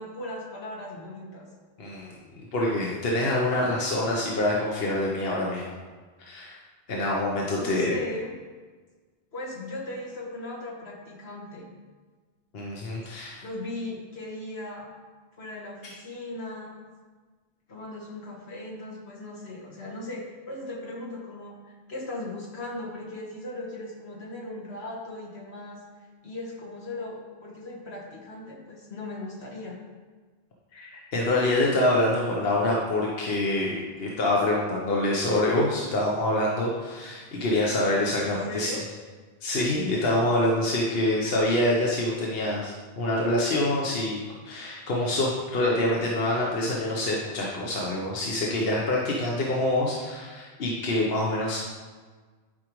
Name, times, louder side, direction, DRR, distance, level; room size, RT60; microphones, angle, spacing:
voice 1, 0.0-1.5 7.5-8.3 9.3-11.7 13.4-14.9 15.4-16.7 17.7-21.6 21.9-25.8 26.2-29.8 38.2-38.8, left 1 dB, 85° left, -2 dB, 1.7 m, -38 dB
voice 2, 1.8-2.1 2.5-5.6 6.2-6.6 6.9-7.9 12.5-13.4 30.7-38.7 39.4-44.2 44.4-51.6, left 1 dB, 70° left, -3 dB, 1.2 m, -26 dB
11.0 x 5.0 x 3.1 m, 1.4 s
omnidirectional pair, 1.1 m